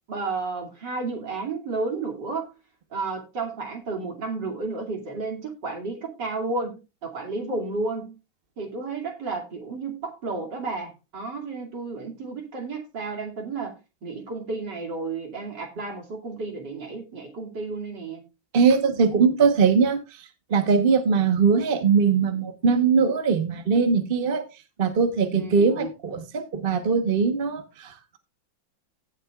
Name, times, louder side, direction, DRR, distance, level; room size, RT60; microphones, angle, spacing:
voice 1, 0.1-2.5 2.9-8.1 8.6-13.7 14.0-18.2 25.3-25.7, right 3 dB, 65° right, 3.1 m, -32 dB
voice 2, 18.5-20.0 20.5-24.4 24.8-28.2, right 5 dB, 35° right, 1.1 m, -21 dB
16.5 x 7.6 x 2.4 m
omnidirectional pair, 2.1 m